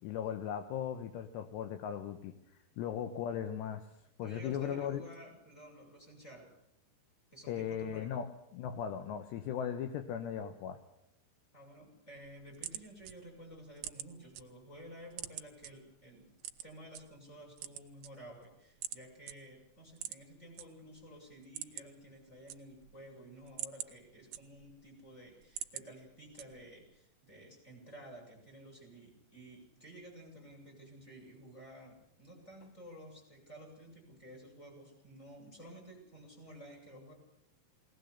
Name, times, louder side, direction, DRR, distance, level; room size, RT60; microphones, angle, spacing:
voice 1, 0.0-3.8 4.2-5.0 7.5-10.8, left 9 dB, 75° left, 8 dB, 3.1 m, -38 dB
voice 2, 4.2-6.5 7.3-8.1 11.5-16.3 16.6-37.1, right 1 dB, 15° left, 0 dB, 8.0 m, -52 dB
sound 1, 12.2-14.4 14.8-15.7 16.4-17.0 17.5-18.5 18.8-19.0 19.3-19.4 19.9-20.7 21.0-21.1 21.4-22.0 22.3-23.0 23.4-24.8 25.2-25.9 26.4-26.8, right 12 dB, 80° right, 1.9 m, -43 dB
21.0 x 19.0 x 8.4 m, 0.81 s
omnidirectional pair, 5.4 m